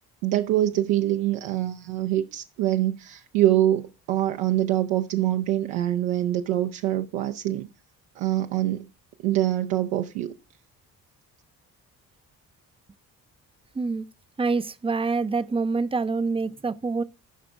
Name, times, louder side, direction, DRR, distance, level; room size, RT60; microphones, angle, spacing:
voice 1, 0.2-7.7 8.2-8.9 9.2-10.3, right 13 dB, 65° right, 0.7 m, -24 dB
voice 2, 13.7-14.1 14.4-17.0, right 4 dB, 10° right, 0.5 m, -26 dB
13.5 x 5.9 x 3.4 m
figure-of-eight pair, 40°, 47 cm